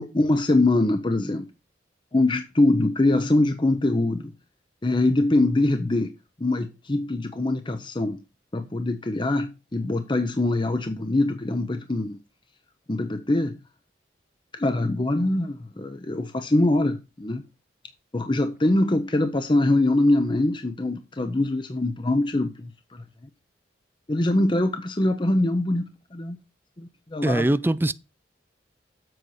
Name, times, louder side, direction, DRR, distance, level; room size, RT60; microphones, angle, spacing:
voice 1, 0.0-1.5 2.1-4.3 4.8-8.2 8.5-12.2 12.9-13.6 14.5-17.5 18.1-23.3 24.1-26.4 26.8-27.5, left 2 dB, 25° left, 0.7 m, -23 dB
voice 2, 27.2-27.9, right 1 dB, 10° right, 0.4 m, -21 dB
7.9 x 5.4 x 6.3 m
head